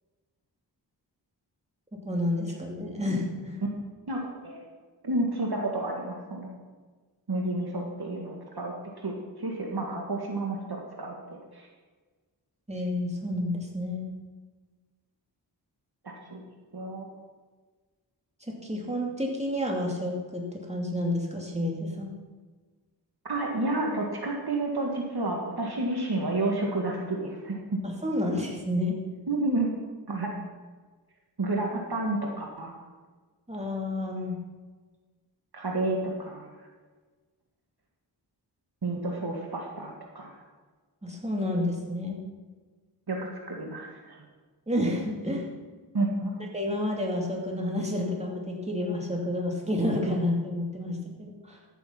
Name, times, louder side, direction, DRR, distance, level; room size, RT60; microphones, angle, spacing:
voice 1, 2.0-3.6 12.7-14.1 18.6-22.1 27.8-28.9 33.5-34.4 41.0-42.2 44.7-45.5 46.5-51.6, left 1 dB, 15° right, -1 dB, 2.7 m, -30 dB
voice 2, 4.1-4.6 5.0-6.5 7.3-11.1 11.5-11.7 16.0-16.4 16.7-17.0 23.3-27.8 28.4-28.5 29.3-29.8 30.1-30.3 31.4-32.8 35.5-36.5 38.8-40.3 43.1-43.2 43.5-44.2 45.9-46.5, right 2 dB, 60° right, 0 dB, 1.9 m, -30 dB
14.0 x 7.0 x 5.8 m, 1.4 s
wide cardioid pair, 55°, 43 cm